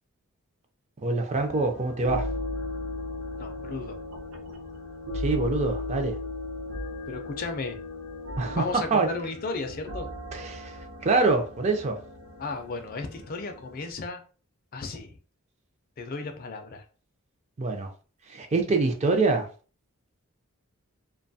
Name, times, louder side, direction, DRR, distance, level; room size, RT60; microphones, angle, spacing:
voice 1, 1.0-2.3 5.1-6.2 8.4-8.6 8.9-9.1 10.3-10.7 11.0-12.0 17.6-17.9 18.3-19.5, right 3 dB, 30° right, 0.4 m, -25 dB
sound 1, 1.3-13.9, left 2 dB, 70° right, 0.7 m, -37 dB
voice 2, 3.4-4.0 7.1-7.8 8.6-10.1 12.4-14.2 14.7-15.2 16.0-16.8, left 3 dB, 40° left, 0.3 m, -34 dB
2.6 x 2.2 x 2.6 m
head